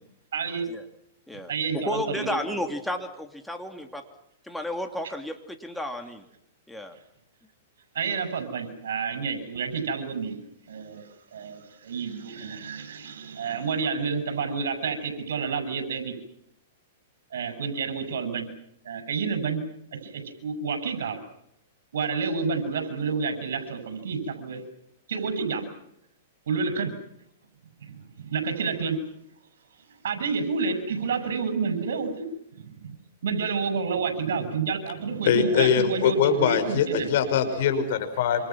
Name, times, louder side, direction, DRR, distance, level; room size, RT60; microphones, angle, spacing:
voice 1, 0.3-0.7 1.5-2.4 7.9-10.4 10.7-16.1 17.3-18.5 18.8-19.6 20.0-21.2 21.9-24.6 25.1-25.7 26.5-26.9 27.8-29.0 30.0-32.3 32.6-33.0 33.2-37.1, right 5 dB, 75° right, 8 dB, 7.4 m, -29 dB
voice 2, 1.3-4.0 4.4-6.2 6.7-7.0, left 1 dB, 5° left, 5 dB, 2.9 m, -32 dB
voice 3, 35.3-38.5, left 7 dB, 60° left, 9 dB, 5.9 m, -23 dB
27.5 x 27.0 x 6.1 m, 0.76 s
hypercardioid pair, 130°, 0 cm